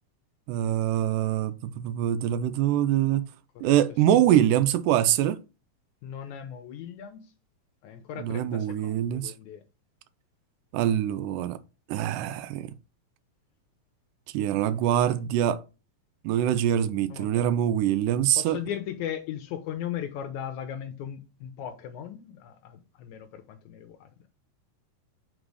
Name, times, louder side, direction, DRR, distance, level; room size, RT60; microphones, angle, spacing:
voice 1, 0.5-3.2 3.6-5.4 8.2-9.3 10.7-11.6 11.9-12.7 14.3-15.6 16.2-18.6, right 11 dB, 80° right, 2.1 m, -24 dB
voice 2, 6.0-7.2 7.8-9.6 17.1-17.5 18.4-24.3, left 9 dB, 75° left, 2.0 m, -38 dB
5.4 x 3.8 x 4.7 m
omnidirectional pair, 3.8 m